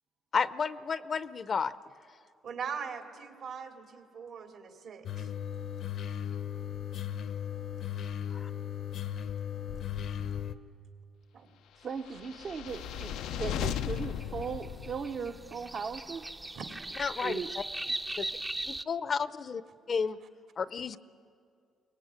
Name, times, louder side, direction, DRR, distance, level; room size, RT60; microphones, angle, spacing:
voice 1, 0.3-1.7 8.3-8.5 17.0-17.6 18.2-18.3 18.7-19.6 19.9-20.2 20.6-21.0, left 5 dB, 45° left, 15 dB, 0.6 m, -32 dB
voice 2, 2.4-5.3 11.3-11.5 16.5-16.9, right 6 dB, 75° right, 4 dB, 2.7 m, -41 dB
sound 1, 5.1-10.6, left 9 dB, 70° left, 0.9 m, -36 dB
voice 3, 11.8-16.3 17.2-17.5, right 5 dB, 55° right, 5 dB, 0.9 m, -38 dB
sound 2, 12.1-15.5, left 10 dB, 90° left, 0.5 m, -36 dB
sound 3, 12.7-18.8, right 2 dB, 15° right, 0.5 m, -40 dB
23.0 x 19.5 x 9.7 m, 2.4 s
cardioid pair, 90°, 0 cm